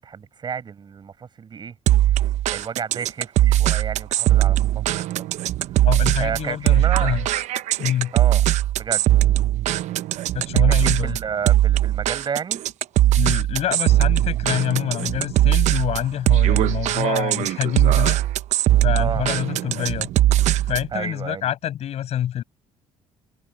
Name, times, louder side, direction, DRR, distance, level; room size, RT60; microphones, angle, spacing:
voice 1, 0.0-4.8 5.1-5.2 6.2-7.1 8.1-8.4 8.7-9.1 10.5-12.6 18.9-19.3 20.9-21.5, right 7 dB, 35° right, 6.8 m, -31 dB
sound 1, 1.9-20.9, right 13 dB, 70° right, 0.8 m, -20 dB
voice 2, 5.8-7.3 7.8-8.1 10.3-11.2 13.1-18.2 18.8-20.1 20.7-22.4, left 11 dB, 60° left, 6.0 m, -26 dB
cardioid pair, 125°, 12 cm